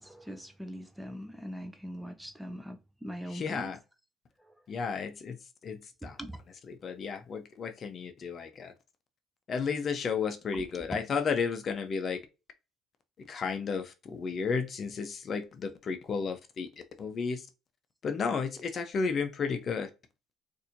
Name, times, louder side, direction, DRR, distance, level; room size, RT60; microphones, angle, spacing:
voice 1, 0.0-3.7 6.0-6.4 10.5-10.9, equal, 5° right, 0.5 m, -42 dB
voice 2, 3.3-3.8 4.7-5.4 5.6-6.2 6.7-8.7 9.5-12.2 13.3-16.7 17.0-17.5 18.0-19.9, left 5 dB, 45° left, 0.7 m, -33 dB
4.2 x 2.7 x 2.6 m
cardioid pair, 100°, 0 cm